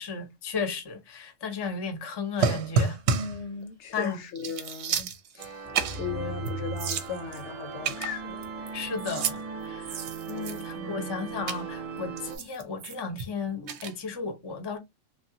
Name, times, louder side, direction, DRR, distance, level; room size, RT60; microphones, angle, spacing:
voice 1, 0.0-3.0 3.9-4.2 8.7-14.8, left 4 dB, 30° left, 0.5 m, -34 dB
sound 1, 2.4-3.4 3.9-4.1 4.4-5.5 5.7-6.1 6.5-6.6 6.8-7.4 7.8-8.7 9.0-9.4 9.8-10.8 11.5-11.6 12.2-13.3 13.7-13.9, right 5 dB, 70° right, 0.8 m, -30 dB
voice 2, 3.1-5.7 5.9-8.5 10.7-11.5, left 5 dB, 70° left, 0.8 m, -37 dB
sound 2, 5.4-12.4, right 6 dB, 50° right, 0.4 m, -39 dB
Mechanisms, 5.6-12.4, right 2 dB, 15° right, 0.7 m, -43 dB
3.1 x 2.3 x 2.6 m
omnidirectional pair, 1.3 m